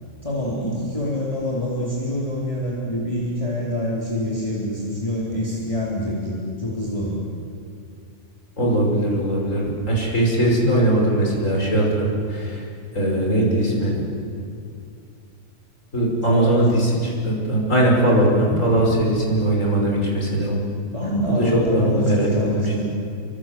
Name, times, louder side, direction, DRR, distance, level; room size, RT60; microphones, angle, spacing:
voice 1, 0.2-7.3 16.3-16.7 18.9-19.0 20.9-22.8, left 1 dB, 25° left, -5 dB, 4.0 m, -26 dB
voice 2, 8.6-12.6 12.9-14.1 15.9-20.6 21.3-22.3 22.5-22.7, right 1 dB, 75° left, -2 dB, 6.2 m, -20 dB
28.5 x 25.0 x 7.7 m, 2.4 s
omnidirectional pair, 1.3 m